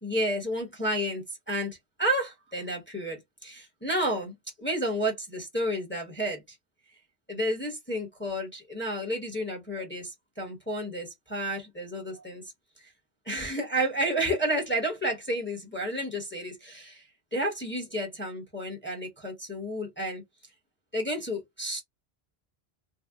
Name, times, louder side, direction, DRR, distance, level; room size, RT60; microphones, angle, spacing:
voice 1, 0.0-6.6 7.3-12.4 13.3-17.0 17.3-20.2 20.9-21.8, right 1 dB, 10° left, 0.9 m, -31 dB
2.7 x 2.1 x 3.4 m
omnidirectional pair, 1.0 m